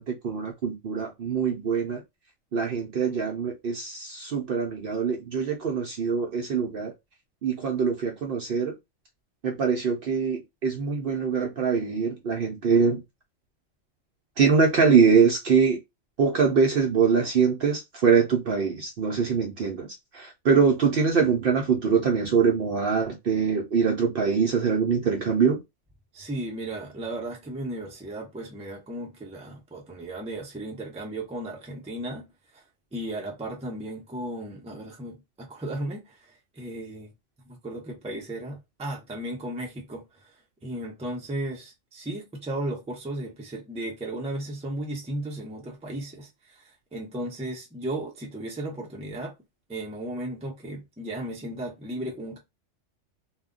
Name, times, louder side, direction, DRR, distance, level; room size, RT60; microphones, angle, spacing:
voice 1, 0.0-2.0 2.5-6.9 7.4-8.7 9.4-13.0 14.4-15.8 16.2-19.9 20.1-25.6, right 5 dB, 60° right, 0.6 m, -23 dB
voice 2, 26.1-32.6 32.9-36.2 36.6-37.1 37.5-40.1 40.6-49.3 49.7-52.4, right 1 dB, 10° right, 0.4 m, -35 dB
2.2 x 2.1 x 3.6 m
omnidirectional pair, 1.3 m